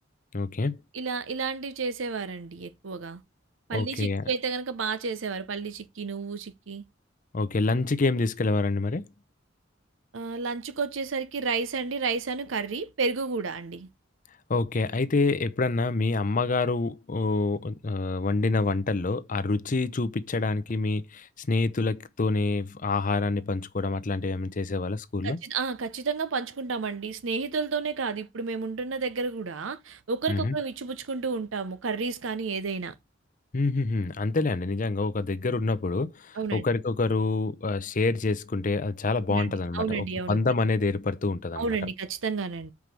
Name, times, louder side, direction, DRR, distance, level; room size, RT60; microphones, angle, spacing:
voice 1, 0.3-0.8 3.7-4.2 7.3-9.1 14.5-25.4 30.3-30.6 33.5-41.8, left 3 dB, 40° left, 0.6 m, -27 dB
voice 2, 0.9-3.2 3.7-6.8 10.1-13.9 25.2-32.9 36.4-36.6 39.3-40.4 41.6-42.7, right 4 dB, 80° right, 0.7 m, -31 dB
6.1 x 4.8 x 5.2 m
head